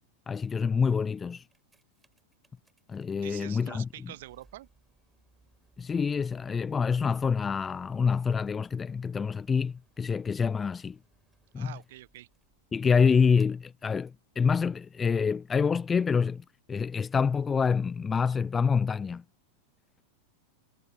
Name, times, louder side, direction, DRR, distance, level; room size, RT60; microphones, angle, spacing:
voice 1, 0.3-1.4 2.9-3.9 5.8-11.0 11.5-11.7 12.7-19.2, left 6 dB, 15° left, 0.3 m, -27 dB
sound 1, 1.3-14.3 15.0-15.1, right 2 dB, 5° right, 4.4 m, -66 dB
voice 2, 3.1-4.7 11.6-12.3, right 15 dB, 55° right, 0.5 m, -45 dB
figure-of-eight pair, 90°, 0 cm